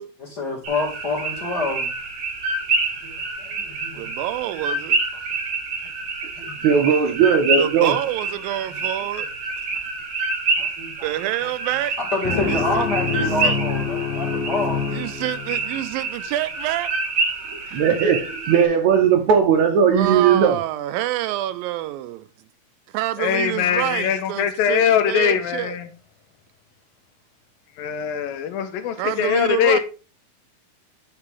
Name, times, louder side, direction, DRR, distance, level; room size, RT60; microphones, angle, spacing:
voice 1, 0.2-1.9 3.0-4.2 6.4-6.7 10.6-11.1 12.1-15.0, left 2 dB, 35° left, 2.3 m, -28 dB
sound 1, 0.6-18.6, right 3 dB, 50° right, 2.0 m, -27 dB
voice 2, 4.0-5.0 7.6-9.3 11.0-12.0 12.5-13.6 14.9-16.9 17.7-17.8 19.9-22.3 22.9-25.8 29.0-29.8, right 14 dB, 85° right, 2.3 m, -27 dB
voice 3, 6.6-7.9 17.5-20.6, right 7 dB, 70° right, 2.0 m, -18 dB
sound 2, 12.2-15.8, left 5 dB, 55° left, 1.9 m, -26 dB
voice 4, 23.2-25.9 27.8-29.8, left 8 dB, 85° left, 2.6 m, -21 dB
9.5 x 5.7 x 3.6 m
omnidirectional pair, 4.1 m